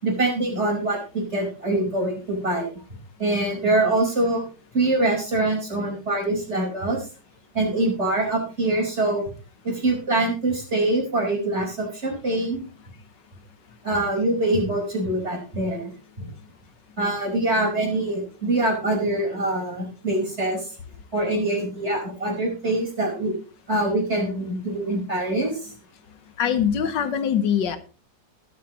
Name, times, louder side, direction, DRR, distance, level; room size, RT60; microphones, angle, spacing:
voice 1, 0.0-2.7 3.2-4.4 4.7-7.1 7.5-9.2 9.6-12.6 13.8-15.9 16.2-16.3 17.0-20.7 21.1-23.3 23.7-25.7, right 2 dB, 35° right, 0 dB, 5.0 m, -24 dB
voice 2, 26.4-27.8, left 8 dB, 70° left, 10 dB, 1.8 m, -22 dB
21.5 x 7.5 x 3.0 m, 0.36 s
omnidirectional pair, 2.0 m